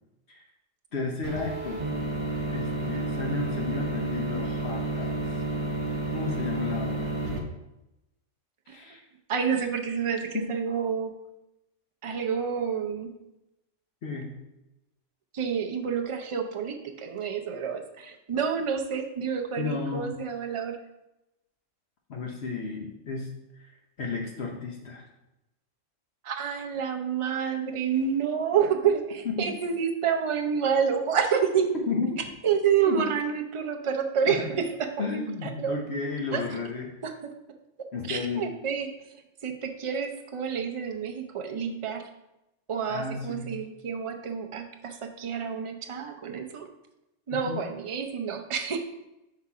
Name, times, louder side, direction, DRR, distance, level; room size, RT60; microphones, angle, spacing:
voice 1, 0.9-1.8 2.5-5.2 6.1-7.1 8.7-9.0 10.3-10.5 14.0-14.3 19.6-20.1 22.1-23.3 23.5-23.7 24.0-25.1 29.4-29.5 31.9-32.1 32.9-33.1 34.3-34.5 35.0-37.0 37.9-38.5 42.9-43.5 47.5-47.6, left 4 dB, 60° left, 0 dB, 1.0 m, -33 dB
sound 1, 1.2-7.4, right 1 dB, 30° right, 0.8 m, -31 dB
voice 2, 9.3-11.1 12.0-13.1 15.3-20.8 26.2-31.8 32.4-35.8 36.3-36.4 37.0-37.1 38.1-38.9 39.4-42.0 42.7-46.7 47.3-48.8, right 7 dB, 45° right, 5 dB, 0.4 m, -28 dB
5.7 x 3.9 x 4.8 m, 0.94 s
omnidirectional pair, 1.3 m